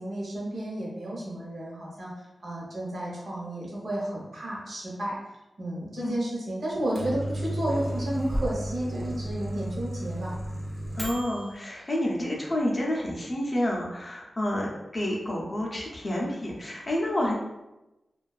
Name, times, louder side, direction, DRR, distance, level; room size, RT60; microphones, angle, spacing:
voice 1, 0.0-2.1 2.4-5.2 5.6-10.3, right 1 dB, 60° right, -4 dB, 0.8 m, -32 dB
Microwave oven, 6.7-11.5, right 1 dB, 25° right, 0.5 m, -33 dB
voice 2, 11.0-17.3, left 1 dB, 30° left, -3 dB, 0.5 m, -29 dB
2.5 x 2.2 x 2.3 m, 0.99 s
wide cardioid pair, 130°, 0 cm